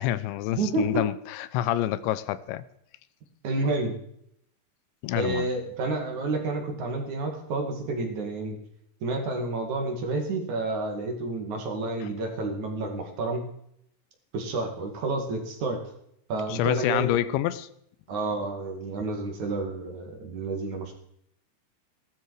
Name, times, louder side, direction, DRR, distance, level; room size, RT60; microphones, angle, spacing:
voice 1, 0.0-2.6 5.0-5.5 12.0-12.1 16.5-17.7, left 13 dB, 85° left, 3.0 m, -27 dB
voice 2, 0.5-1.0 3.4-3.9 5.1-8.6 9.0-13.4 14.3-15.8 16.3-17.1 18.1-20.9, right 2 dB, 50° right, 3.2 m, -30 dB
18.0 x 13.0 x 4.9 m
omnidirectional pair, 5.1 m